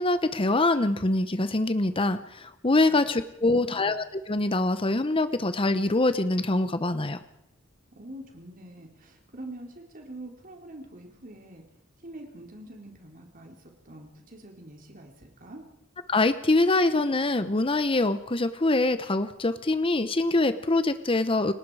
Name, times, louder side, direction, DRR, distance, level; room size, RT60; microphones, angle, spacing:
voice 1, 0.0-7.2 16.1-21.5, left 2 dB, 25° left, 12 dB, 0.9 m, -24 dB
voice 2, 3.4-3.9 7.9-11.6 12.0-15.6, right 1 dB, 45° right, 2 dB, 3.9 m, -45 dB
30.0 x 18.0 x 4.9 m, 0.85 s
head